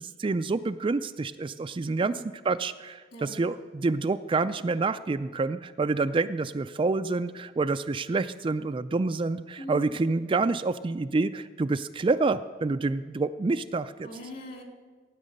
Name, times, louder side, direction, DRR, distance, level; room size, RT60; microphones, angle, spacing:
voice 1, 0.0-2.1 2.4-14.1, right 3 dB, 25° right, 10 dB, 0.3 m, -28 dB
voice 2, 9.6-10.0 14.0-14.6, equal, 50° left, 2 dB, 2.5 m, -41 dB
16.5 x 9.3 x 6.6 m, 1.4 s
head